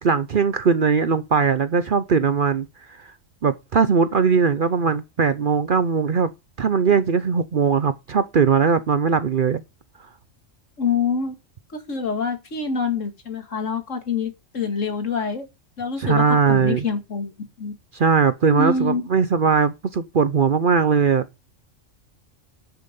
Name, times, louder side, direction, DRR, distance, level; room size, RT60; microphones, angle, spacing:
voice 1, 0.0-3.0 3.4-6.3 6.6-9.6 16.0-16.8 17.9-21.3, right 6 dB, 50° right, 0.8 m, -20 dB
voice 2, 10.8-11.3 11.7-15.5 15.8-17.3 17.6-17.7 18.5-19.0, left 5 dB, 70° left, 2.4 m, -26 dB
11.0 x 6.8 x 5.3 m
omnidirectional pair, 1.3 m